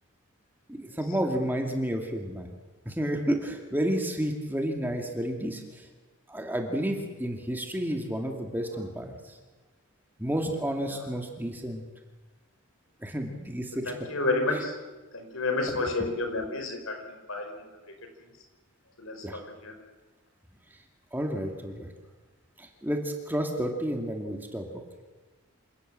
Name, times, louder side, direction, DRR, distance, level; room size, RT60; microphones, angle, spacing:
voice 1, 0.7-2.5 2.9-5.9 6.3-9.3 10.2-11.8 13.0-14.1 14.5-14.6 16.0-16.1 19.2-19.4 21.1-21.9 22.6-24.7, equal, 10° right, 2 dB, 2.3 m, -31 dB
voice 2, 13.9-14.7 15.1-17.5 19.0-19.7, left 2 dB, 75° left, 5 dB, 4.9 m, -30 dB
27.0 x 18.0 x 7.6 m, 1.3 s
head